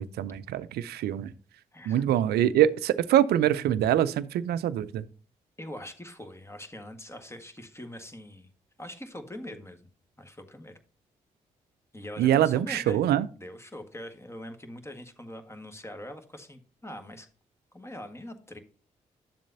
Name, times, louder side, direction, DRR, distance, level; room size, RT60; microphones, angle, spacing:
voice 1, 0.0-1.3 1.9-5.0 12.2-13.3, right 11 dB, 75° right, 0.5 m, -24 dB
voice 2, 1.7-2.0 2.4-2.5 5.6-8.5 8.8-9.8 10.2-10.7 11.9-13.1 13.3-17.3 17.7-18.6, left 1 dB, 15° left, 1.6 m, -43 dB
10.5 x 7.3 x 2.7 m
hypercardioid pair, 40°, 17 cm